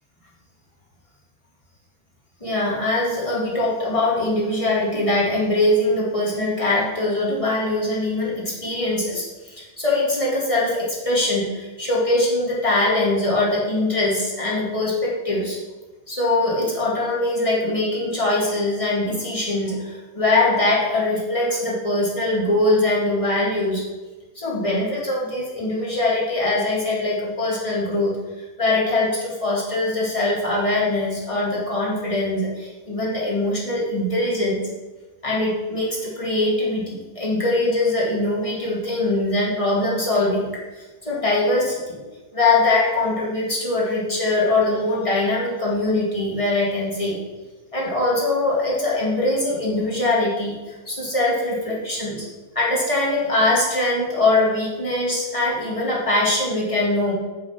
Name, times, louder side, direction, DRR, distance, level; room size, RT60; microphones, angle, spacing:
voice 1, 2.4-15.6 16.1-23.8 24.3-34.7 35.2-40.5 40.7-42.0 42.3-47.2 47.7-52.2 52.5-57.1, left 2 dB, 20° left, -5 dB, 0.8 m, -22 dB
7.0 x 6.8 x 5.8 m, 1.2 s
omnidirectional pair, 4.1 m